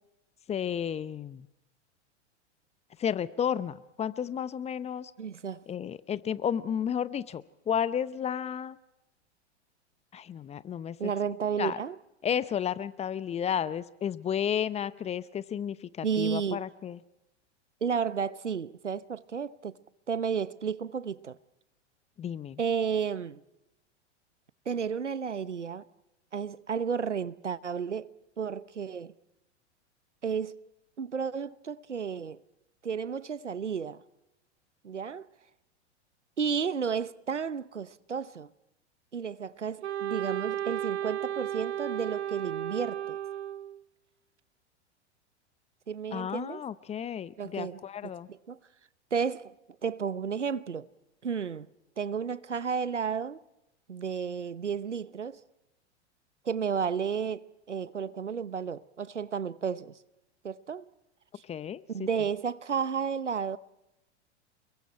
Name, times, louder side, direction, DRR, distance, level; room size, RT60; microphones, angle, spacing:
voice 1, 0.5-1.5 3.0-5.1 5.7-8.8 10.1-11.0 11.6-11.8 12.2-17.0 22.2-22.6 46.1-48.3 61.4-62.1, left 8 dB, 20° left, 0.8 m, -32 dB
voice 2, 5.2-5.6 11.0-12.0 16.0-16.6 17.8-19.7 20.1-21.4 22.6-23.4 24.7-25.8 26.3-29.1 30.2-30.6 31.0-32.4 32.8-34.0 34.8-35.3 36.4-38.5 39.1-43.2 45.9-46.6 47.4-48.6 49.1-49.6 49.8-50.9 51.2-51.7 52.0-53.4 53.9-55.4 56.4-60.0 60.4-60.9 61.9-63.6, right 6 dB, 90° right, 0.9 m, -32 dB
Wind instrument woodwind instrument, 39.8-43.8, right 11 dB, 70° right, 1.1 m, -34 dB
29.5 x 22.0 x 4.5 m
figure-of-eight pair, 95°, 35 cm